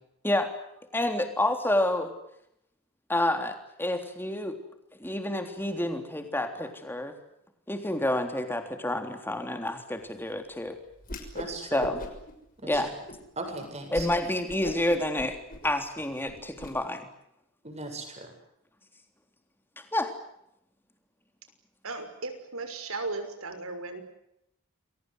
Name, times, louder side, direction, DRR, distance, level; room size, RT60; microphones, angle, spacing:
voice 1, 0.9-2.1 3.1-4.6 5.0-7.1 7.7-10.8 11.6-12.0 12.6-12.9 13.9-15.4 15.6-17.0 19.9-20.1, left 1 dB, 10° left, 6 dB, 3.5 m, -29 dB
Whoosh swoosh swish, 11.0-11.5 11.8-12.3 12.7-13.2 13.6-13.7 13.9-14.1 14.5-16.7, left 1 dB, 40° left, 6.3 m, -39 dB
voice 2, 11.3-11.9 12.6-12.8 13.4-14.1 17.6-18.3, right 2 dB, 30° right, 5 dB, 7.7 m, -38 dB
voice 3, 21.8-24.0, right 3 dB, 75° right, 8 dB, 6.2 m, -36 dB
29.0 x 23.0 x 8.1 m, 0.79 s
head